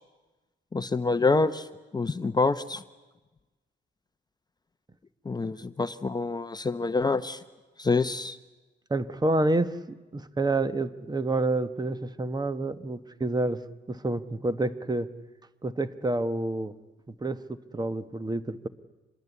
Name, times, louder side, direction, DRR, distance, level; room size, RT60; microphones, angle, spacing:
voice 1, 0.7-1.7 1.9-2.8 5.3-7.4 7.8-8.4, left 3 dB, 20° left, 11 dB, 0.8 m, -26 dB
voice 2, 8.9-15.1 15.6-16.7 17.1-18.7, right 2 dB, 20° right, 13 dB, 1.1 m, -28 dB
25.5 x 21.0 x 8.3 m, 1.2 s
cardioid pair, 90°, 20 cm